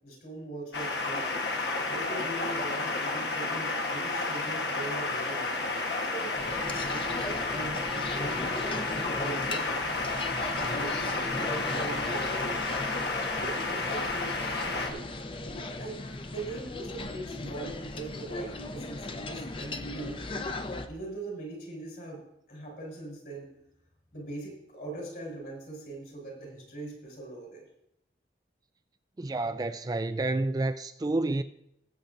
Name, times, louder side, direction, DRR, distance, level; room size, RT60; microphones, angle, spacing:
voice 1, 0.0-1.3 1.9-5.5 5.8-10.0 10.5-12.6 13.3-15.1 15.8-20.3 20.9-23.6 24.1-27.6, right 2 dB, 55° left, 4.5 m, -41 dB
sound 1, 0.7-14.9, left 3 dB, 80° left, 1.3 m, -31 dB
sound 2, 6.4-20.9, left 2 dB, 30° left, 0.6 m, -37 dB
voice 2, 29.2-31.4, right 2 dB, 20° right, 0.3 m, -29 dB
19.5 x 8.3 x 2.6 m
head